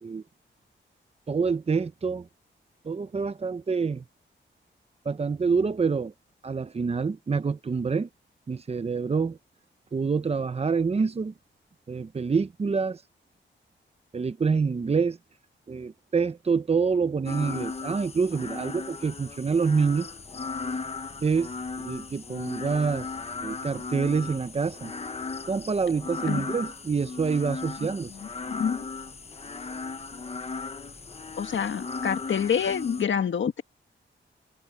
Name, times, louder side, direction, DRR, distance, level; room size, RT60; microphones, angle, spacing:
voice 1, 1.3-2.3 2.8-4.0 5.0-6.1 6.4-8.1 8.5-9.4 9.9-11.3 11.9-13.0 14.1-15.2 15.7-20.1 21.2-21.5 21.8-23.1 23.4-24.9 25.5-28.1, right 5 dB, 30° right, 0.8 m, -26 dB
sound 1, 17.2-33.0, left 4 dB, 30° left, 1.1 m, -36 dB
voice 2, 27.8-28.8 31.4-33.6, left 7 dB, 70° left, 1.7 m, -28 dB
wide cardioid pair, 160°, 20 cm